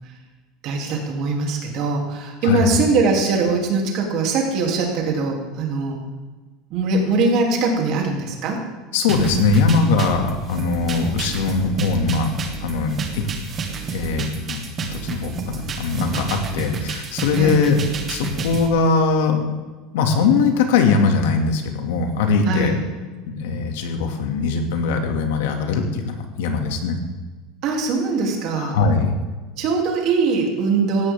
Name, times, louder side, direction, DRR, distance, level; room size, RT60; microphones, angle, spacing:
voice 1, 0.6-6.0 6.7-8.6 17.4-17.6 22.5-22.7 27.6-28.8 29.6-31.1, right 3 dB, 40° right, 0 dB, 3.2 m, -21 dB
voice 2, 2.4-2.8 8.9-12.3 12.6-13.3 13.9-17.8 18.1-19.4 19.9-22.8 23.3-27.0 28.6-29.1, left 4 dB, 85° left, 4 dB, 2.4 m, -21 dB
sound 1, 9.1-18.7, right 5 dB, 20° right, 1.6 m, -30 dB
18.0 x 14.5 x 3.8 m, 1.3 s
cardioid pair, 175°, 0 cm